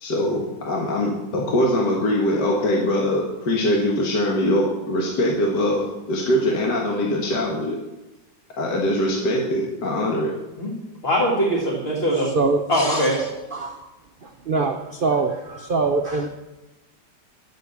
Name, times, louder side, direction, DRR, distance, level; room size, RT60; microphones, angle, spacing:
voice 1, 0.0-7.8 8.6-10.3, left 1 dB, 70° left, -1 dB, 2.0 m, -22 dB
voice 2, 11.0-12.3 12.7-13.3, equal, 35° left, -4 dB, 2.0 m, -21 dB
voice 3, 12.4-13.0 13.6-13.7 14.5-14.8 15.0-15.3 15.6-16.3, right 3 dB, 90° right, 5 dB, 0.4 m, -22 dB
10.5 x 6.8 x 6.9 m, 1.1 s
omnidirectional pair, 2.0 m